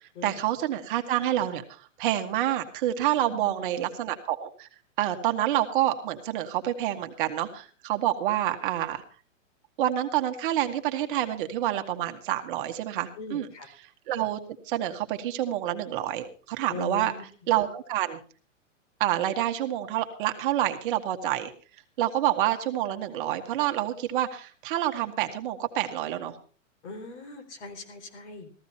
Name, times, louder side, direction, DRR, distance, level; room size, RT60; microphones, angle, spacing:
voice 1, 0.2-4.7 5.0-9.0 9.8-13.5 14.1-14.4 14.6-17.1 17.5-18.2 19.0-21.5 22.0-26.4, right 12 dB, 40° right, 6 dB, 1.5 m, -28 dB
voice 2, 3.2-3.9 13.2-13.7 16.7-17.2 26.8-28.5, left 4 dB, 60° left, 5 dB, 4.0 m, -40 dB
15.0 x 15.0 x 4.2 m, 0.38 s
hypercardioid pair, 155°, 39 cm